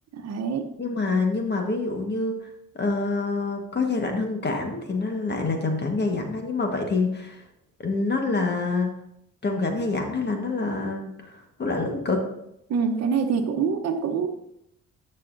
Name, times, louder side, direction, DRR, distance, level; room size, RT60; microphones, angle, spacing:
voice 1, 0.1-0.7 12.7-14.3, right 6 dB, 60° right, 4 dB, 1.0 m, -25 dB
voice 2, 0.8-2.4 2.7-7.4 7.8-8.9 9.4-12.2, left 3 dB, 35° left, 3 dB, 1.5 m, -26 dB
11.0 x 6.6 x 2.6 m, 0.80 s
cardioid pair, 90°, 30 cm